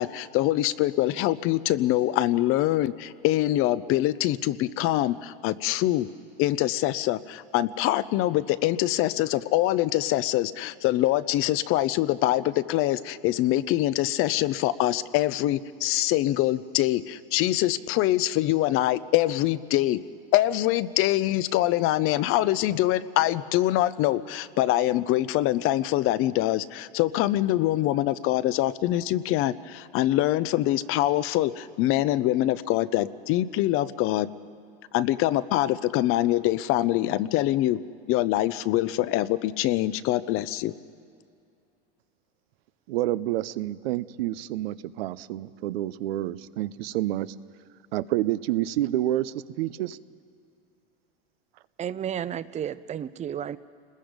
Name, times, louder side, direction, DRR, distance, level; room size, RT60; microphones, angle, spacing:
voice 1, 0.0-6.1 6.4-20.0 20.3-34.3 34.9-37.8 38.1-40.7, left 15 dB, 45° left, 16 dB, 0.7 m, -24 dB
voice 2, 42.9-47.3 47.9-50.0, right 14 dB, 80° right, 15 dB, 0.7 m, -28 dB
voice 3, 51.8-53.6, right 9 dB, 25° right, 16 dB, 0.6 m, -32 dB
29.5 x 20.5 x 5.2 m, 2.4 s
supercardioid pair, 120°, 30 cm